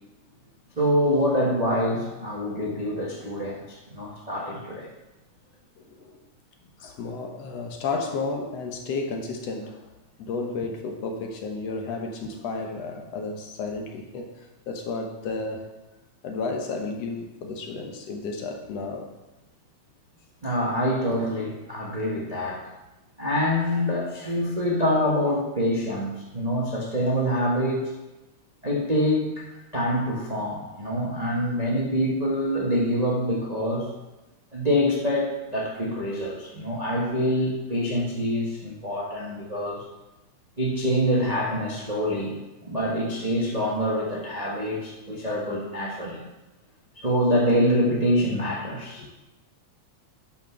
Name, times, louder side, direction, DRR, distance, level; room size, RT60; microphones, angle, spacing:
voice 1, 0.8-4.9 20.4-22.6 23.2-27.9 28.6-29.4 29.7-33.9 34.5-39.8 40.6-42.4 42.6-46.2 47.0-49.2, equal, 30° right, -4 dB, 0.6 m, -25 dB
voice 2, 5.8-6.2 6.8-9.8 10.2-15.7 16.2-19.1 49.0-49.2, left 3 dB, 65° left, 2 dB, 1.9 m, -32 dB
9.2 x 5.8 x 5.8 m, 1.0 s
omnidirectional pair, 3.4 m